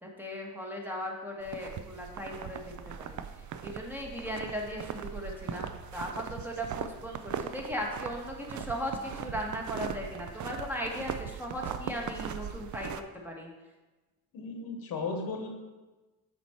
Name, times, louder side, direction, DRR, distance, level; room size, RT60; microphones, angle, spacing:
voice 1, 0.0-3.2 3.6-5.7 5.9-13.5, equal, 5° right, -1 dB, 1.4 m, -37 dB
sound 1, 1.4-13.0, right 8 dB, 55° right, 0.5 m, -40 dB
voice 2, 14.3-15.5, left 4 dB, 70° left, 4 dB, 1.1 m, -35 dB
7.2 x 4.4 x 4.4 m, 1.2 s
cardioid pair, 85°, 36 cm